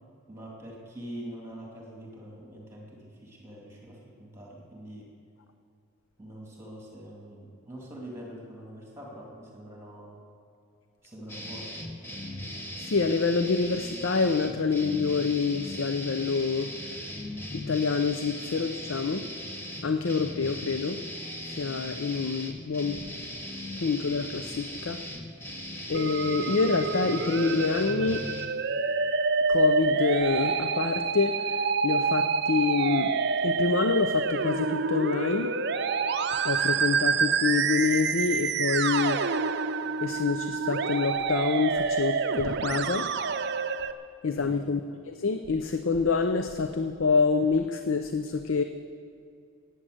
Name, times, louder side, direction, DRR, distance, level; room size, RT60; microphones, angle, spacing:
voice 1, 0.3-5.1 6.2-10.2 11.0-12.1 44.3-44.7, right 1 dB, 10° right, -2 dB, 2.4 m, -44 dB
sound 1, 11.3-28.5, left 1 dB, 10° left, 1.0 m, -39 dB
voice 2, 12.8-16.7 17.5-19.3 19.8-21.0 21.5-23.0 23.8-25.0 25.9-28.2 29.5-33.1 33.4-35.5 36.3-39.2 40.0-43.1 44.2-44.8 45.1-48.6, left 4 dB, 70° left, 8 dB, 0.6 m, -27 dB
Musical instrument, 25.9-43.9, right 5 dB, 50° right, 0.5 m, -27 dB
13.5 x 9.3 x 7.8 m, 2.5 s
head